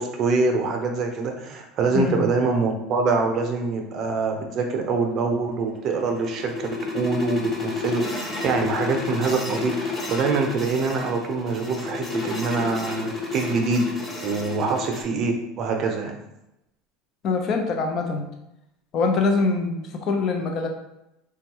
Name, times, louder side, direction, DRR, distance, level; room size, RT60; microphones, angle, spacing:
voice 1, 0.0-13.9 14.2-16.1, right 4 dB, 50° right, 3 dB, 0.6 m, -25 dB
voice 2, 1.9-2.3 17.2-18.3 18.9-20.7, left 4 dB, 50° left, 3 dB, 0.6 m, -24 dB
sound 1, 5.6-15.0, left 3 dB, 20° left, 0.8 m, -31 dB
3.4 x 2.3 x 2.9 m, 0.87 s
hypercardioid pair, 90°, 0 cm